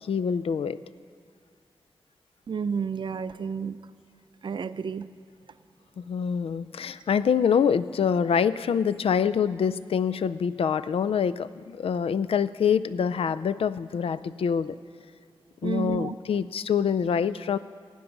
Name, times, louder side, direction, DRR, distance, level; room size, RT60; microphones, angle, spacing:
voice 1, 0.0-0.8 6.0-14.8 15.6-17.6, left 7 dB, 85° left, 15 dB, 0.4 m, -25 dB
voice 2, 2.5-3.8 4.4-5.1 15.6-16.1, right 6 dB, 55° right, 13 dB, 0.4 m, -30 dB
17.0 x 8.7 x 5.9 m, 2.2 s
wide cardioid pair, 145°, 10 cm